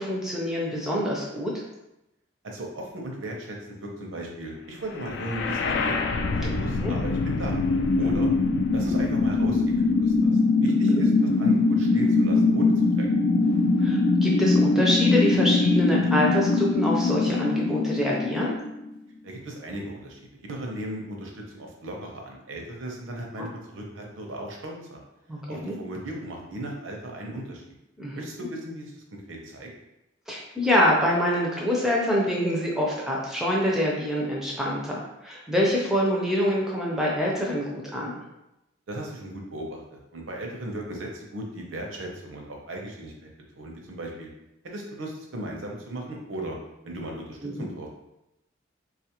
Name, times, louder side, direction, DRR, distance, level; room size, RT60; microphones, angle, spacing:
voice 1, 0.0-1.5 6.4-6.5 6.8-7.0 8.0-8.1 13.8-18.5 23.4-23.5 25.3-25.7 28.0-28.2 30.3-38.1 47.4-47.7, equal, 5° right, -4 dB, 0.5 m, -26 dB
voice 2, 2.4-6.0 6.3-7.6 8.0-8.3 8.7-10.3 10.6-11.1 11.4-13.1 19.2-25.0 25.5-27.8 28.1-28.9 29.3-29.7 38.9-44.3 44.6-46.6 46.8-47.9, right 1 dB, 85° right, 0 dB, 0.7 m, -37 dB
sound 1, 5.0-19.0, left 3 dB, 65° left, 0.3 m, -22 dB
3.7 x 2.4 x 2.9 m, 0.90 s
head